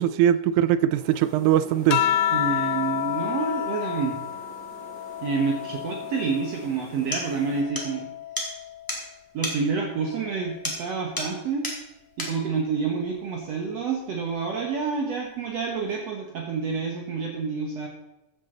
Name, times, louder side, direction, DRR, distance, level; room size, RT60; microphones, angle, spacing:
voice 1, 0.0-2.0, right 11 dB, 80° right, 15 dB, 1.9 m, -21 dB
sound 1, 0.9-7.6, right 2 dB, 35° right, 2.5 m, -46 dB
sound 2, 1.9-6.7 7.2-8.9 10.1-10.6, left 11 dB, 80° left, 2.0 m, -30 dB
voice 2, 2.3-4.2 5.2-8.1 9.3-11.7 12.2-17.9, right 5 dB, 60° right, 1 dB, 2.1 m, -28 dB
sound 3, 6.5-6.6 7.1-7.3 7.8-7.9 8.4-8.5 8.9-9.0 9.4-9.6 10.6-10.9 11.2-11.4 11.6-11.8 12.2-12.4, left 1 dB, 5° left, 2.2 m, -31 dB
14.5 x 9.7 x 3.9 m, 0.95 s
omnidirectional pair, 3.8 m